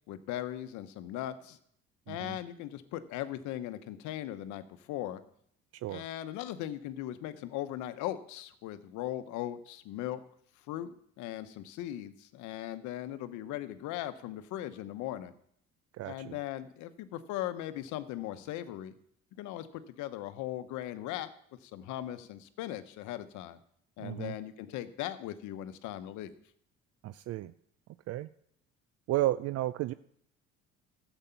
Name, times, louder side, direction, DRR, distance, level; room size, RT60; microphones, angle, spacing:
voice 1, 0.1-1.6 2.1-5.2 5.9-10.2 10.7-15.3 16.0-19.0 19.4-21.3 21.6-23.6 24.0-26.4, left 13 dB, 75° left, 12 dB, 1.0 m, -39 dB
voice 2, 2.1-2.4 5.8-6.0 15.9-16.4 24.0-24.3 27.0-27.5 28.1-28.3 29.1-29.9, right 15 dB, 55° right, 15 dB, 0.4 m, -33 dB
12.0 x 8.0 x 5.8 m, 0.68 s
supercardioid pair, 75°, 30 cm